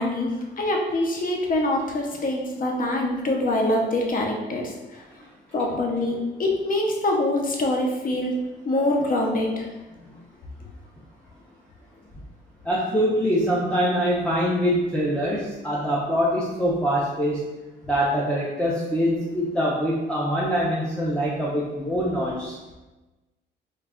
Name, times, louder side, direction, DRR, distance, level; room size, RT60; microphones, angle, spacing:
voice 1, 0.0-4.7 5.5-9.7, left 1 dB, 45° left, 0 dB, 0.7 m, -24 dB
voice 2, 12.6-17.4 17.8-22.5, equal, 5° left, -6 dB, 0.6 m, -24 dB
3.1 x 2.3 x 3.6 m, 1.1 s
cardioid pair, 90°, 20 cm